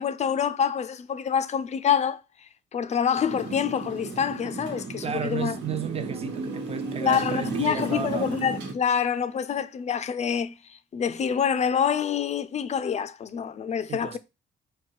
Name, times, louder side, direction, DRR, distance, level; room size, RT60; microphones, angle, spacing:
voice 1, 0.0-5.6 7.0-14.2, left 7 dB, 40° left, 0.4 m, -26 dB
Motorcycle, 3.3-8.7, right 3 dB, 80° right, 1.3 m, -34 dB
voice 2, 5.0-8.3 13.9-14.2, right 7 dB, 35° right, 0.6 m, -33 dB
4.4 x 2.2 x 4.7 m
cardioid pair, 110°, 18 cm